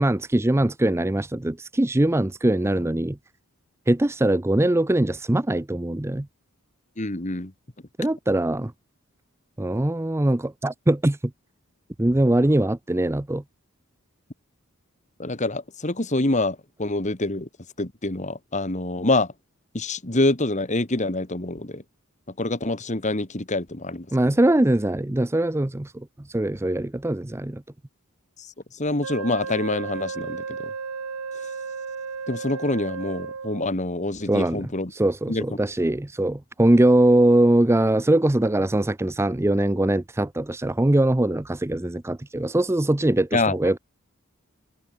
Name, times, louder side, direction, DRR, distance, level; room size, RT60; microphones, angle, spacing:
voice 1, 0.0-3.2 3.9-6.3 8.0-8.7 9.6-11.3 12.0-13.4 24.1-27.6 34.3-43.8, right 1 dB, 10° right, 0.5 m, -22 dB
voice 2, 7.0-7.5 15.2-17.5 17.8-19.3 19.7-21.8 22.4-24.1 28.7-30.7 32.3-34.9 35.3-35.4 43.3-43.6, left 2 dB, 35° left, 1.9 m, -26 dB
Wind instrument woodwind instrument, 29.0-33.7, right 5 dB, 80° right, 0.9 m, -34 dB
head